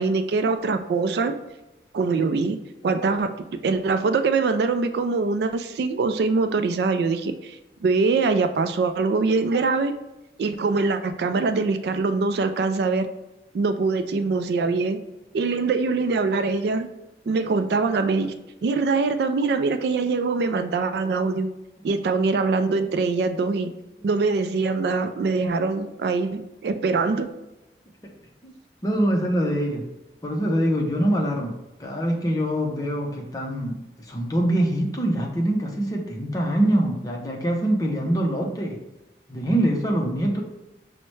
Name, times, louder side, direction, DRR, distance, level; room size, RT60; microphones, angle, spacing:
voice 1, 0.0-1.4 1.9-2.6 2.8-9.9 10.4-13.1 13.5-15.0 15.3-16.9 17.3-18.3 18.6-21.5 21.8-23.7 24.0-27.3, right 4 dB, 70° right, 9 dB, 0.3 m, -23 dB
voice 2, 28.8-29.9 30.2-38.8 39.3-40.4, right 1 dB, 20° left, 0 dB, 0.6 m, -24 dB
5.5 x 2.1 x 3.1 m, 0.98 s
head